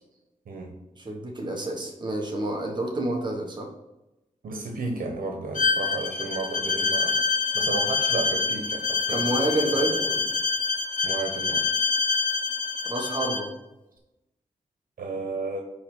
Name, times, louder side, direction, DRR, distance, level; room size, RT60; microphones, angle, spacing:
voice 1, 1.0-3.7 9.1-10.0 12.8-13.5, right 1 dB, 30° right, 1 dB, 1.4 m, -28 dB
voice 2, 4.4-10.2 11.0-11.6 15.0-15.6, right 3 dB, 85° right, 2 dB, 1.2 m, -33 dB
Bowed string instrument, 5.5-13.5, left 4 dB, 65° left, 1.0 m, -26 dB
9.7 x 3.4 x 6.1 m, 0.97 s
wide cardioid pair, 170°, 14 cm